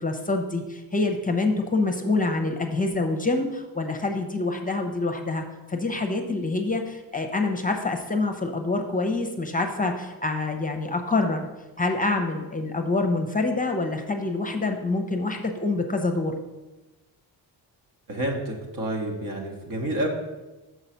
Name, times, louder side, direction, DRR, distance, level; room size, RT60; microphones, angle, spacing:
voice 1, 0.0-11.5 11.8-16.3, left 3 dB, 20° left, 4 dB, 0.8 m, -26 dB
voice 2, 18.1-20.1, right 1 dB, 50° right, 0 dB, 1.3 m, -29 dB
6.3 x 4.0 x 5.8 m, 1.1 s
cardioid pair, 75°, 45 cm